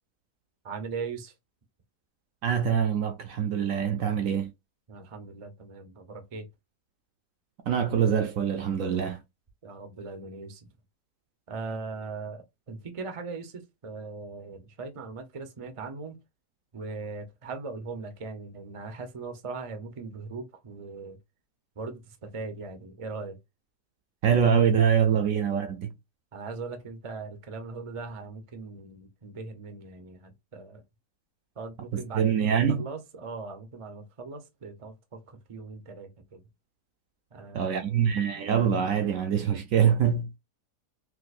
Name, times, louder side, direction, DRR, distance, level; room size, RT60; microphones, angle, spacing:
voice 1, 0.6-1.3 4.9-6.5 9.6-10.7 11.5-16.2 16.7-21.2 21.8-23.4 26.3-30.8 31.6-36.4 37.3-38.0, right 4 dB, 45° right, 0.4 m, -39 dB
voice 2, 2.4-4.5 7.7-9.2 24.2-25.9 31.9-32.8 37.5-40.3, right 8 dB, 70° right, 0.8 m, -24 dB
4.7 x 2.0 x 2.4 m
omnidirectional pair, 1.7 m